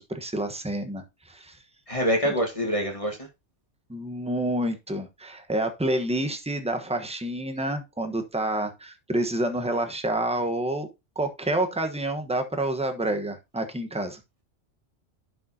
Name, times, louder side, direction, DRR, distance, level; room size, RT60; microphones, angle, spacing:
voice 1, 0.0-1.6 3.9-10.9 11.2-14.2, right 1 dB, 5° right, 1.0 m, -28 dB
voice 2, 1.9-3.3, equal, 30° left, 1.5 m, -25 dB
11.5 x 5.3 x 2.7 m
omnidirectional pair, 1.2 m